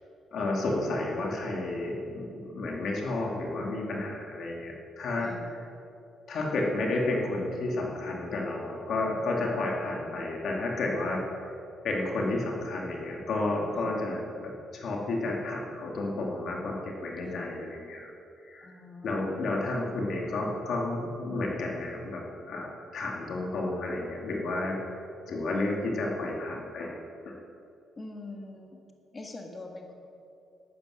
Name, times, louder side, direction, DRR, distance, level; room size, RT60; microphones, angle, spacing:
voice 1, 0.3-5.6 6.3-11.5 11.8-18.1 18.4-18.7 19.0-24.8 25.3-27.0 27.3-27.4, left 2 dB, 65° left, -1 dB, 2.2 m, -31 dB
voice 2, 5.2-5.5 9.1-9.3 13.7-14.1 17.2-17.6 18.6-19.4 28.0-28.8 29.1-29.9, left 2 dB, 30° left, 3 dB, 1.7 m, -44 dB
12.0 x 8.9 x 6.2 m, 2.7 s
cardioid pair, 90°, 0 cm